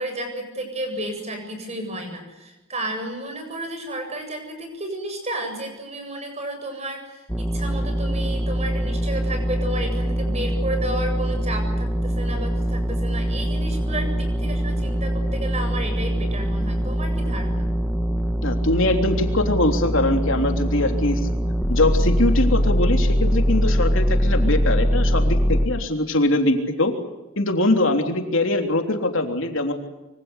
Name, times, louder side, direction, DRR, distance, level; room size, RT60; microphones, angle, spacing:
voice 1, 0.0-17.7, right 1 dB, 30° right, 5 dB, 7.8 m, -32 dB
sound 1, 7.3-25.7, equal, ahead, 1.9 m, -22 dB
voice 2, 18.4-21.2 21.7-26.9 27.4-29.7, left 2 dB, 60° left, 4 dB, 3.4 m, -22 dB
26.0 x 25.0 x 8.2 m, 1.0 s
head